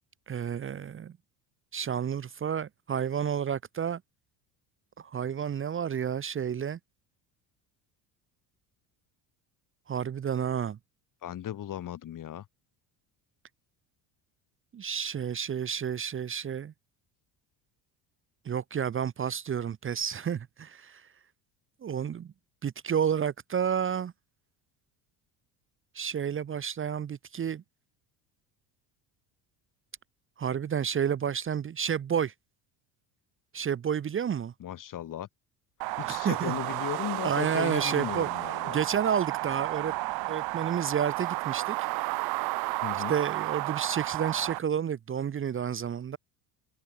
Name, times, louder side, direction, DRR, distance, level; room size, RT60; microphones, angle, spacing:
voice 1, 0.3-1.1 1.7-4.0 5.0-6.8 9.9-10.8 14.7-16.7 18.4-21.1 21.8-22.3 22.6-24.1 25.9-27.6 30.4-32.3 33.5-34.5 36.0-36.5 37.2-38.3 38.7-39.9 40.3-41.8 43.1-46.2, right 8 dB, 30° right, 1.2 m, -30 dB
voice 2, 11.2-12.5 34.6-35.3 36.0-38.8 42.8-43.2, left 11 dB, 45° left, 7.3 m, -36 dB
sound 1, 35.8-44.6, right 23 dB, 60° right, 0.6 m, -32 dB
cardioid pair, 135°, 43 cm